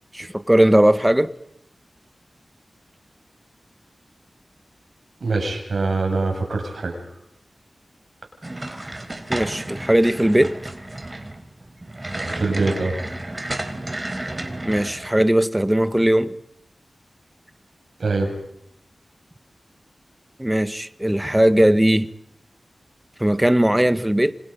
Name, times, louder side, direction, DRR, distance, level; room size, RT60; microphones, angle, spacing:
voice 1, 0.1-1.3 9.3-10.6 14.6-16.4 20.4-22.1 23.2-24.3, right 1 dB, 10° right, 1.3 m, -18 dB
voice 2, 5.2-7.1 12.1-13.0 18.0-18.3, right 3 dB, 80° right, 7.4 m, -24 dB
sound 1, 8.4-15.1, right 1 dB, 30° right, 3.9 m, -32 dB
27.0 x 27.0 x 5.4 m
cardioid pair, 50°, 0 cm